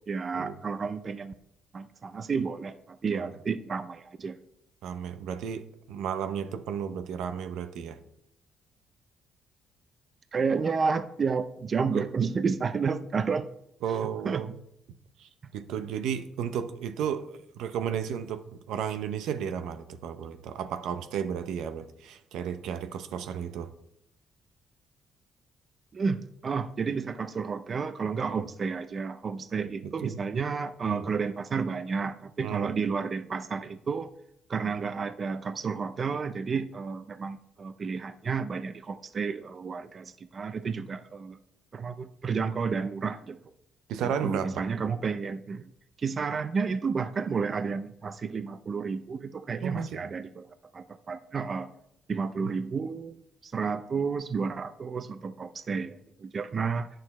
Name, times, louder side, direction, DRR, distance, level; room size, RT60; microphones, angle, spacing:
voice 1, 0.0-1.3 1.7-4.4 10.3-13.5 14.2-14.4 25.9-34.1 34.5-41.4 41.7-43.4 44.0-45.7 46.0-50.5 50.7-51.7 52.1-53.2 53.4-56.9, right 5 dB, 40° right, 12 dB, 0.5 m, -31 dB
voice 2, 4.8-8.0 11.9-12.1 13.8-14.5 15.2-18.4 18.7-23.7 28.3-28.4 29.8-30.2 30.8-31.0 32.4-32.7 43.9-44.6 49.6-50.0 52.4-52.6, right 8 dB, 85° right, 10 dB, 0.7 m, -33 dB
8.8 x 6.5 x 4.2 m, 0.77 s
cardioid pair, 90°, 0 cm